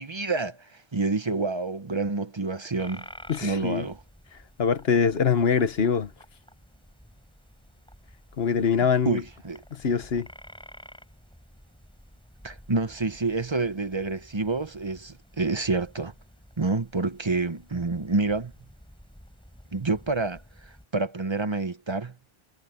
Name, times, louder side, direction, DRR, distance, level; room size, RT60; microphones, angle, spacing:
voice 1, 0.0-3.1 3.4-4.0 9.0-9.6 12.4-16.1 16.6-18.5 19.7-22.1, right 3 dB, 30° right, 1.0 m, -28 dB
sound 1, 2.8-20.9, equal, 5° left, 4.4 m, -51 dB
voice 2, 3.3-3.9 4.6-6.1 8.4-9.2 9.7-10.3, left 6 dB, 70° left, 1.3 m, -23 dB
omnidirectional pair, 1.1 m